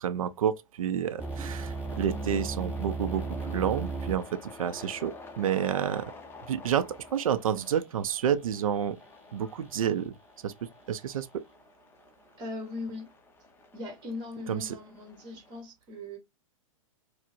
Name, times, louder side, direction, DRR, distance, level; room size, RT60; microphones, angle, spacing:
voice 1, 0.0-6.1 6.4-9.0 9.3-10.1 10.4-11.4 14.5-14.8, right 9 dB, 80° right, 0.4 m, -30 dB
sound 1, 1.2-15.6, left 3 dB, 15° left, 0.6 m, -50 dB
sound 2, 1.2-7.1, right 3 dB, 5° right, 1.0 m, -37 dB
voice 2, 12.4-13.1 13.7-16.2, left 2 dB, 25° right, 1.2 m, -39 dB
4.4 x 2.0 x 2.5 m
hypercardioid pair, 115°, 18 cm